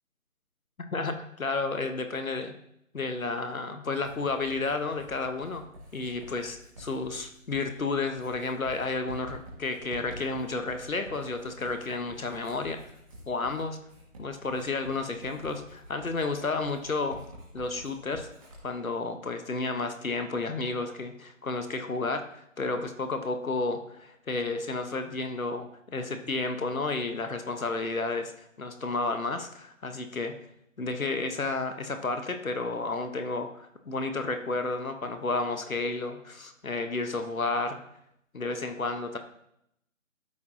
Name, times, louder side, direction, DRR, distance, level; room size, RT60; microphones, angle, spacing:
voice 1, 0.9-2.6 2.9-5.6 5.9-12.8 13.3-13.8 14.2-17.2 17.5-18.3 18.6-22.2 22.6-30.3 30.8-37.8 38.3-39.2, left 3 dB, 85° left, 7 dB, 1.1 m, -31 dB
Writing, 4.0-18.6, equal, 25° right, 1.9 m, -48 dB
13.0 x 4.6 x 2.7 m, 0.76 s
figure-of-eight pair, 165°, 40 cm